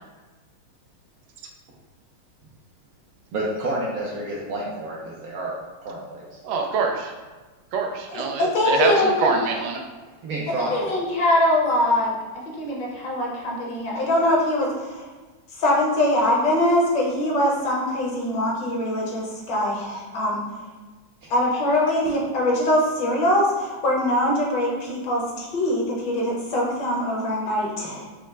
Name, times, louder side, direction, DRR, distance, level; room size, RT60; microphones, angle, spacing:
voice 1, 3.3-5.5 5.8-6.2 10.2-10.9, right 1 dB, 70° right, -4 dB, 0.8 m, -29 dB
voice 2, 6.4-7.1 7.7-9.8, right 4 dB, 90° right, 2 dB, 1.4 m, -24 dB
voice 3, 8.1-9.4 10.7-12.2 12.6-15.0 15.6-20.4 21.3-28.1, left 1 dB, 65° left, -3 dB, 1.5 m, -22 dB
5.7 x 2.1 x 3.2 m, 1.3 s
omnidirectional pair, 2.2 m